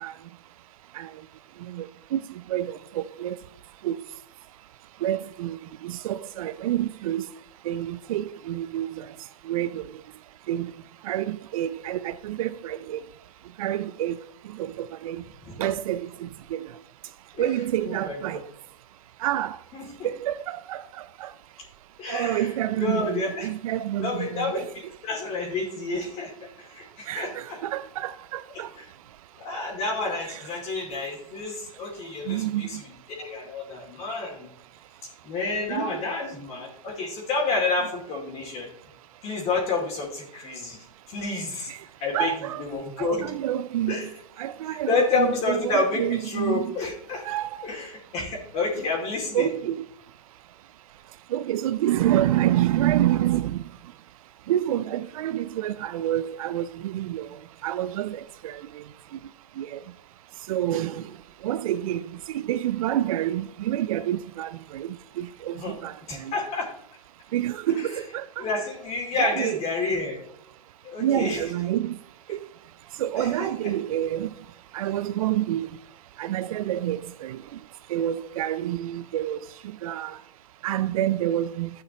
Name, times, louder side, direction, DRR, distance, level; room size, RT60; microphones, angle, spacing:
voice 1, 1.7-2.2 2.5-3.3 3.8-4.0 5.0-5.6 5.8-7.2 7.7-8.9 9.5-9.8 10.5-10.7 11.1-13.0 13.6-14.1 14.6-14.7 15.0-15.2 15.6-16.1 16.5-16.6 17.4-18.4 19.2-19.6 20.2-20.8 21.2-21.3 22.1-24.6 27.1-28.7 30.3-30.4 32.3-32.7 35.7-35.9 41.7-41.8 42.1-42.6 43.0-43.9 44.4-46.6 47.3-47.5 49.3-49.8 51.3-53.6 54.5-57.3 57.6-58.2 58.4-58.6 59.6-59.8 60.5-61.0 61.4-62.0 62.3-64.9 65.2-65.9 67.3-68.2 69.2-69.6 71.0-71.9 72.3-72.4 73.0-74.3 74.7-75.7 76.2-77.4 77.9-79.4 79.8-80.2 80.6-81.7, right 12 dB, 65° right, 0.4 m, -27 dB
voice 2, 17.9-18.2 19.8-20.1 22.0-23.5 24.0-24.7 25.0-27.6 29.4-32.8 33.2-34.5 35.2-38.7 39.2-40.8 41.1-41.7 42.0-42.3 42.6-43.3 43.9-44.1 44.7-47.2 47.6-49.5 65.6-65.8 66.1-66.7 67.7-67.9 68.4-70.2 70.8-71.4 73.2-73.7, left 3 dB, 35° left, 2.4 m, -29 dB
12.5 x 8.3 x 2.9 m
hypercardioid pair, 115°, 19 cm